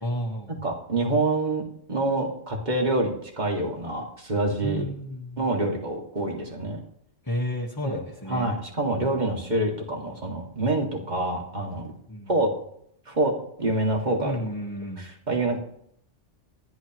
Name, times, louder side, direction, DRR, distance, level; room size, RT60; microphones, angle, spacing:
voice 1, 0.0-0.6 4.6-5.4 7.2-8.6 12.1-12.3 14.2-15.1, equal, 20° left, -2 dB, 1.4 m, -32 dB
voice 2, 0.6-1.6 1.9-4.8 5.4-6.8 7.8-8.0 8.3-11.8 12.3-12.5 13.1-13.3 13.6-14.4 15.0-15.6, right 2 dB, 35° right, 0 dB, 2.4 m, -26 dB
28.0 x 11.0 x 3.1 m, 0.72 s
omnidirectional pair, 1.2 m